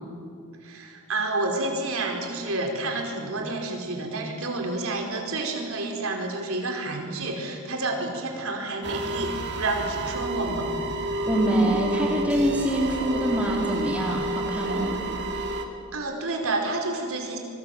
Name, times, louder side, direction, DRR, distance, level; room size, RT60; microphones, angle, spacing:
voice 1, 0.6-10.7 15.9-17.4, right 2 dB, 70° right, 2 dB, 4.8 m, -29 dB
sound 1, 8.8-15.6, right 1 dB, 50° right, 2.6 m, -30 dB
voice 2, 11.3-15.0, right 1 dB, 5° right, -1 dB, 3.7 m, -25 dB
25.0 x 24.5 x 7.9 m, 2.4 s
head